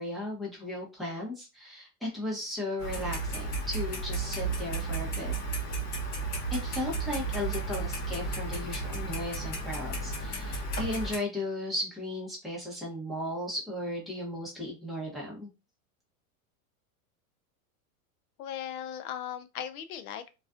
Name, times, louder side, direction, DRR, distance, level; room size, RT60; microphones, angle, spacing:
voice 1, 0.0-5.3 6.5-15.5, left 1 dB, ahead, 0.7 m, -36 dB
Clock, 2.8-11.2, right 2 dB, 50° left, 1.1 m, -33 dB
voice 2, 18.4-20.3, left 10 dB, 80° left, 0.6 m, -38 dB
2.4 x 2.3 x 2.4 m
supercardioid pair, 145°, 42 cm